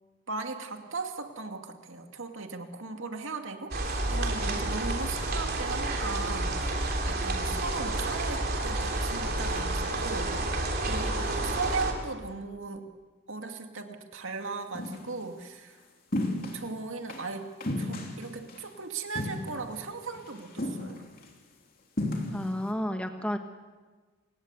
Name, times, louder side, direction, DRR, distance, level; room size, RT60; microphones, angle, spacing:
voice 1, 0.3-10.3 10.8-12.9 13.3-15.8 16.5-17.5 17.8-21.0, right 4 dB, 65° right, 5 dB, 2.4 m, -37 dB
sound 1, 3.7-11.9, right 2 dB, 45° right, 3.5 m, -30 dB
sound 2, 14.7-15.1 16.1-16.6 17.1-17.2 17.6-18.6 19.1-19.8 20.1-20.3 20.6-21.3 22.0-22.5, left 1 dB, 45° left, 3.4 m, -33 dB
voice 2, 22.3-23.4, equal, 5° left, 5 dB, 1.2 m, -31 dB
28.5 x 18.0 x 8.2 m, 1.4 s
head